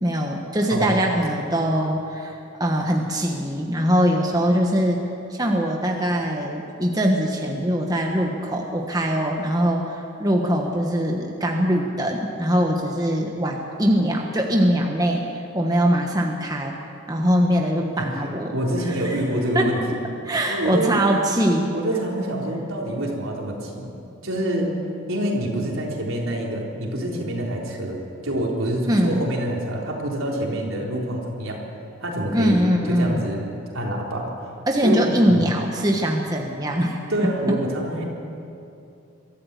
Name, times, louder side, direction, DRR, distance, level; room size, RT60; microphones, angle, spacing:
voice 1, 0.0-16.7 17.1-18.6 18.9-19.2 19.5-19.7 20.2-21.8 28.9-29.3 32.3-33.2 34.7-37.0, equal, 15° right, 1 dB, 1.3 m, -22 dB
voice 2, 0.7-1.0 18.0-18.1 18.5-19.8 20.5-21.0 21.7-23.9 24.2-24.7 25.1-31.6 32.0-34.3 34.8-35.5 37.1-38.0, right 1 dB, 75° right, -2 dB, 4.0 m, -26 dB
23.0 x 13.5 x 8.4 m, 2.6 s
head